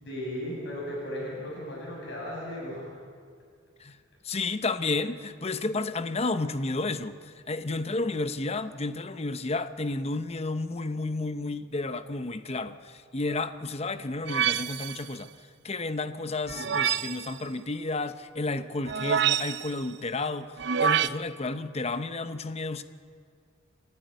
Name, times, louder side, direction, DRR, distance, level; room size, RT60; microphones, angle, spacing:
voice 1, 0.1-2.9 16.5-16.7, equal, 60° left, -4 dB, 6.7 m, -36 dB
voice 2, 4.2-15.3 15.6-22.8, left 3 dB, 30° left, 11 dB, 0.9 m, -31 dB
sound 1, 14.3-15.1 16.5-17.3 18.9-19.8 20.6-21.1, right 8 dB, 60° right, 0.6 m, -26 dB
30.0 x 12.5 x 9.3 m, 2.1 s
head